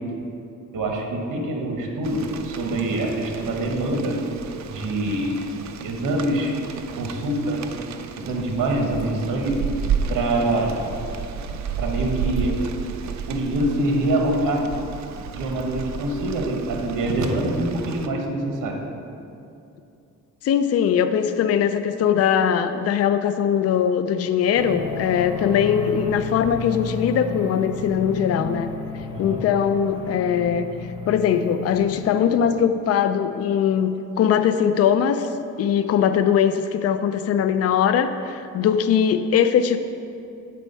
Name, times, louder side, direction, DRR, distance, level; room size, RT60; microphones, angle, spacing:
voice 1, 0.7-4.2 4.7-5.4 5.8-7.6 8.2-9.7 10.1-10.8 11.8-12.6 13.2-14.7 15.3-18.8 29.1-29.4, right 1 dB, 75° right, 2 dB, 1.1 m, -25 dB
Rain, 2.0-18.1, right 6 dB, 60° right, 0.5 m, -32 dB
voice 2, 20.4-28.7 29.2-35.3 35.6-39.8, left 8 dB, 50° left, 9 dB, 0.4 m, -21 dB
sound 1, 24.6-32.8, left 4 dB, 15° right, 0.9 m, -33 dB
8.4 x 4.3 x 5.4 m, 2.6 s
cardioid pair, 95°, 32 cm